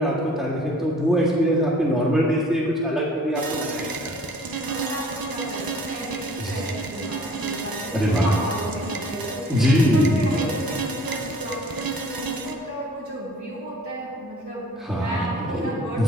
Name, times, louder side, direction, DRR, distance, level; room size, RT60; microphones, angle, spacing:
voice 1, 0.0-4.1 6.4-6.5 7.9-8.3 9.5-10.1 14.8-15.7 15.9-16.0, equal, ahead, -10 dB, 1.9 m, -22 dB
sound 1, 3.3-12.5, right 4 dB, 85° right, 0.7 m, -32 dB
voice 2, 4.6-9.4 9.8-16.0, equal, 55° right, -8 dB, 2.5 m, -33 dB
8.7 x 8.3 x 4.6 m, 2.6 s
wide cardioid pair, 45°, 34 cm